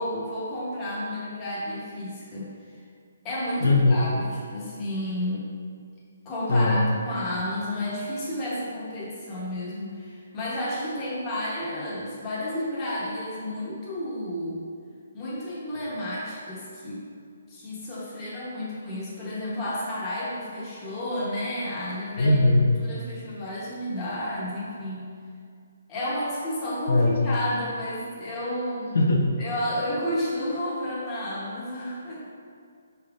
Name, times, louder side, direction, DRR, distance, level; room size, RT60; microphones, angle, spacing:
voice 1, 0.0-2.8 3.2-5.4 6.2-14.6 15.1-17.1 17.5-22.4 22.8-25.0 25.9-29.0 29.4-32.2, left 1 dB, 20° left, -7 dB, 0.9 m, -31 dB
voice 2, 3.6-4.0 6.5-6.8 22.2-22.6 26.9-27.2 28.9-29.3, left 2 dB, 80° left, -1 dB, 0.5 m, -20 dB
4.1 x 3.3 x 2.4 m, 2.2 s
hypercardioid pair, 155°, 0 cm